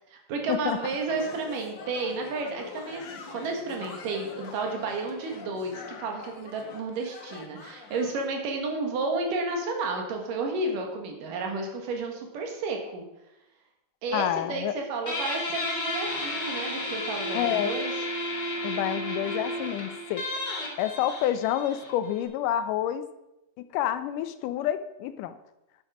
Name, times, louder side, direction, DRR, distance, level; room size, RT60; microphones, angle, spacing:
voice 1, 0.3-3.0 3.3-13.1 14.0-17.9, right 3 dB, 85° right, 2 dB, 3.4 m, -32 dB
sound 1, 0.7-8.2, left 4 dB, 60° left, 1.3 m, -44 dB
voice 2, 14.1-14.8 17.3-17.7 18.6-20.2 20.8-23.0 23.6-25.4, left 11 dB, 85° left, 12 dB, 2.3 m, -28 dB
Guitar, 15.1-22.2, left 1 dB, 35° left, 2.4 m, -32 dB
10.5 x 8.6 x 5.0 m, 0.91 s
omnidirectional pair, 3.7 m